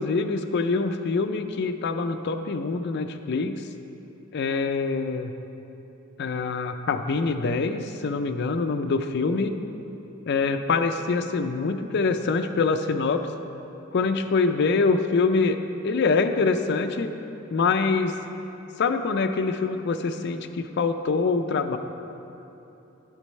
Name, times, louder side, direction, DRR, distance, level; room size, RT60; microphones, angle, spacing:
voice 1, 0.0-3.6 4.3-5.3 6.2-9.5 10.3-13.3 13.9-15.6 15.8-17.1 17.5-18.2 18.8-21.8, left 4 dB, 55° left, 8 dB, 0.4 m, -25 dB
9.6 x 8.5 x 3.1 m, 3.0 s
head